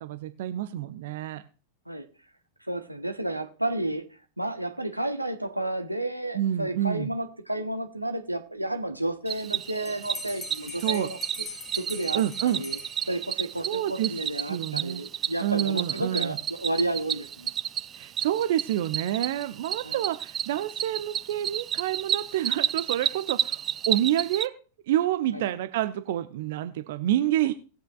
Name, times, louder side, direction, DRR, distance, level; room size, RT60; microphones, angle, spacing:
voice 1, 0.0-1.4 6.3-7.1 10.8-11.1 12.1-12.6 13.6-14.1 14.5-15.0 15.4-16.4 18.0-23.6 23.9-24.5 24.9-27.5, right 12 dB, 55° right, 10 dB, 0.7 m, -28 dB
voice 2, 2.7-4.1 4.4-11.2 11.7-12.8 13.1-17.5 19.8-20.0 25.3-25.5, right 1 dB, 85° right, 7 dB, 1.1 m, -31 dB
Cricket, 9.3-24.5, right 9 dB, 25° right, 0.4 m, -31 dB
Bell, 9.9-13.5, left 3 dB, 15° left, 1.9 m, -42 dB
20.0 x 7.7 x 2.4 m, 0.36 s
figure-of-eight pair, 90°, 0 cm